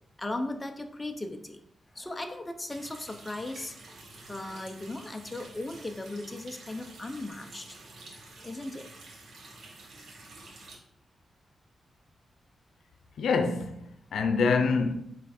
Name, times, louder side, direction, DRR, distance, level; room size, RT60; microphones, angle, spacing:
voice 1, 0.2-1.6 1.9-3.7 4.3-7.8 8.4-8.9, left 2 dB, 15° left, 0.8 m, -37 dB
Water tap faucet, 2.7-10.7, right 2 dB, 80° right, 1.8 m, -49 dB
voice 2, 13.2-14.9, left 4 dB, 85° left, 0.7 m, -26 dB
8.2 x 3.4 x 4.3 m
cardioid pair, 100°, 0 cm